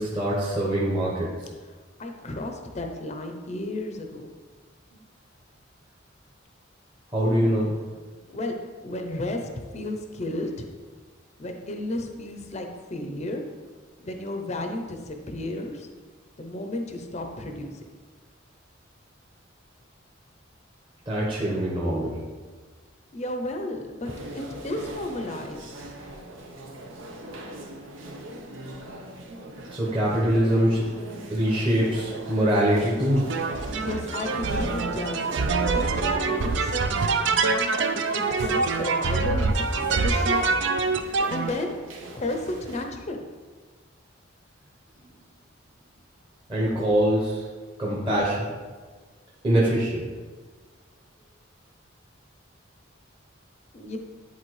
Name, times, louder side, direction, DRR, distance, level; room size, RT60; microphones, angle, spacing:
voice 1, 0.0-1.3 7.1-7.8 21.1-22.1 29.7-30.9 31.3-33.3 46.5-47.4 47.8-48.4 49.4-50.0, right 1 dB, 25° right, -6 dB, 1.1 m, -23 dB
voice 2, 2.0-4.3 8.3-8.6 8.8-10.7 11.4-13.4 14.0-15.9 16.4-17.7 23.1-25.9 33.7-35.2 35.9-36.7 38.1-40.4 41.3-41.8 42.1-43.2 53.7-54.0, left 1 dB, 35° left, 4 dB, 0.6 m, -33 dB
sound 1, 24.0-42.8, right 1 dB, 80° right, 0.9 m, -39 dB
sound 2, 33.3-41.5, right 4 dB, 65° right, 0.4 m, -25 dB
10.0 x 4.1 x 3.2 m, 1.4 s
head